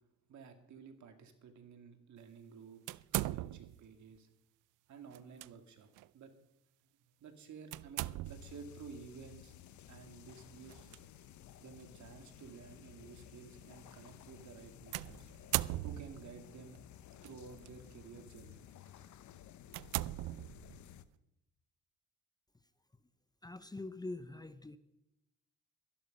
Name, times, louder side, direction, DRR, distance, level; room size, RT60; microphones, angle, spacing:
voice 1, 0.3-4.3 4.9-5.9 6.1-6.3 6.8-9.5 9.9-10.9 11.6-15.3 15.8-16.8 17.2-18.6, right 6 dB, 70° right, 7 dB, 2.3 m, -53 dB
sound 1, 2.9-3.9 5.1-5.5 6.0-6.1 7.7-8.6 10.7-11.0 11.8-11.9 14.9-16.3 17.2-17.7 18.3-18.5 19.0-19.1 19.7-20.9, right 17 dB, 85° right, 0.5 m, -38 dB
sound 2, 8.2-21.1, left 11 dB, 70° left, 0.9 m, -55 dB
voice 2, 23.4-24.8, left 2 dB, 15° left, 13 dB, 0.7 m, -44 dB
13.5 x 11.5 x 5.4 m, 0.87 s
cardioid pair, 90°, 30 cm